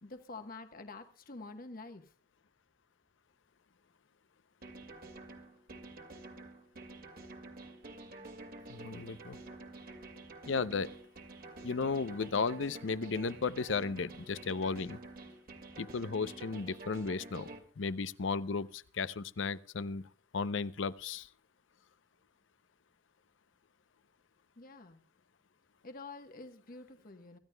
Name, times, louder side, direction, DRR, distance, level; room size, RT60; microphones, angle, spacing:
voice 1, 0.0-2.1 24.6-25.0 25.8-27.4, left 3 dB, 50° left, 1.2 m, -48 dB
sound 1, 4.6-17.6, right 2 dB, 50° right, 2.3 m, -49 dB
voice 2, 8.7-9.4 10.5-10.9 11.6-15.0 15.8-17.5 17.8-20.0 20.3-21.3, left 4 dB, 75° left, 0.6 m, -34 dB
25.5 x 14.5 x 2.3 m
head